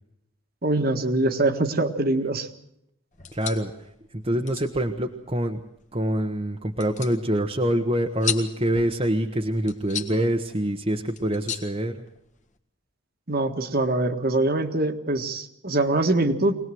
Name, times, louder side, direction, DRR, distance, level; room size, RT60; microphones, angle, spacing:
voice 1, 0.6-2.5 13.3-16.6, right 2 dB, 45° right, 7 dB, 1.7 m, -23 dB
sound 1, 3.1-12.6, left 8 dB, 35° left, 1.7 m, -38 dB
voice 2, 3.3-3.7 4.1-5.6 5.9-12.0, right 1 dB, 25° right, 2 dB, 1.2 m, -25 dB
23.5 x 19.0 x 7.8 m, 0.78 s
head